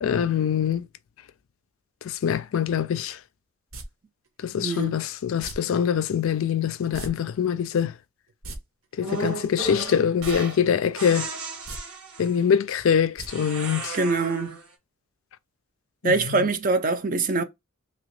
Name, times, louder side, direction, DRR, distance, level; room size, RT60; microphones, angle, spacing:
voice 1, 0.0-0.9 2.0-3.2 4.4-7.9 9.0-11.3 12.2-14.0 16.0-16.5, left 8 dB, 60° left, 0.3 m, -24 dB
sound 1, 3.7-3.8 5.4-5.5 6.9-7.1 7.4-7.5 8.3-8.6 10.2-10.4 10.7-10.8 11.5-11.8 13.2-13.3 13.6-13.7, right 2 dB, 65° right, 0.9 m, -37 dB
voice 2, 4.6-5.0 13.9-14.6 16.0-17.4, right 3 dB, 40° right, 0.5 m, -24 dB
sound 2, 9.0-10.6 10.9-12.4 13.3-14.7, right 3 dB, 80° right, 1.5 m, -34 dB
2.9 x 2.9 x 3.0 m
head